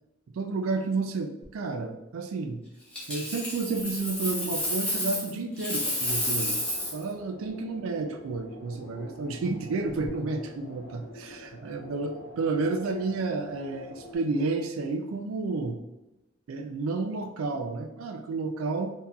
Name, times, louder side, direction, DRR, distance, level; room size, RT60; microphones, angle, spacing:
voice 1, 0.3-2.6 3.1-6.6 6.9-15.8 16.5-18.9, right 3 dB, 80° right, 5 dB, 0.4 m, -31 dB
Coin (dropping), 2.9-5.3 5.6-7.0 9.9-10.1, left 1 dB, 5° left, 1.1 m, -30 dB
sound 1, 6.0-14.2, left 1 dB, 60° left, 0.7 m, -47 dB
3.7 x 2.8 x 2.3 m, 0.97 s
head